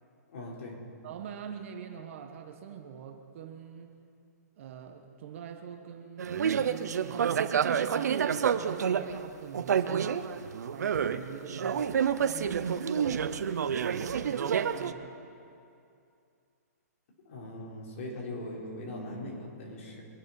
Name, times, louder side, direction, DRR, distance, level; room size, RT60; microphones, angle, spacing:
voice 1, 0.3-0.8 17.2-20.0, left 1 dB, 50° left, -3 dB, 4.7 m, -40 dB
voice 2, 1.0-3.9 4.6-10.2 10.7-15.2, right 8 dB, 45° right, 5 dB, 1.4 m, -44 dB
sound 1, 6.2-9.2 9.5-11.2 11.5-14.9, right 7 dB, 75° right, 0.8 m, -29 dB
24.5 x 11.0 x 4.5 m, 2.5 s
hypercardioid pair, 155°, 9 cm